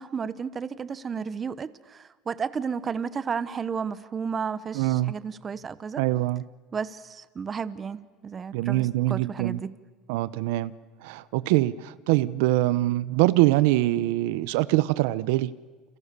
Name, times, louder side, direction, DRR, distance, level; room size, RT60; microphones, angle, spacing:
voice 1, 0.0-6.0 6.7-9.8, right 6 dB, 25° right, 1.1 m, -33 dB
voice 2, 4.7-5.1 6.0-6.4 8.5-9.6 10.1-10.7 11.0-15.5, right 17 dB, 80° right, 0.8 m, -23 dB
30.0 x 28.0 x 6.9 m
supercardioid pair, 125°, 0 cm